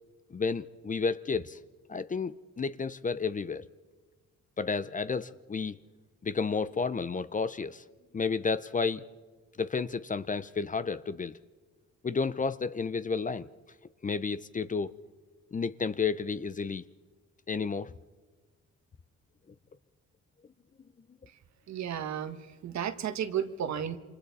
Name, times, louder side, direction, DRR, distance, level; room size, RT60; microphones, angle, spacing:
voice 1, 0.3-1.6 1.9-3.6 4.6-5.8 6.2-7.8 8.1-9.0 9.6-11.4 12.0-13.5 14.0-14.9 15.5-16.8 17.5-17.9, left 5 dB, 25° left, 0.7 m, -31 dB
voice 2, 21.7-24.0, right 9 dB, 65° right, 1.5 m, -33 dB
28.0 x 26.0 x 4.2 m
cardioid pair, 90°, 30 cm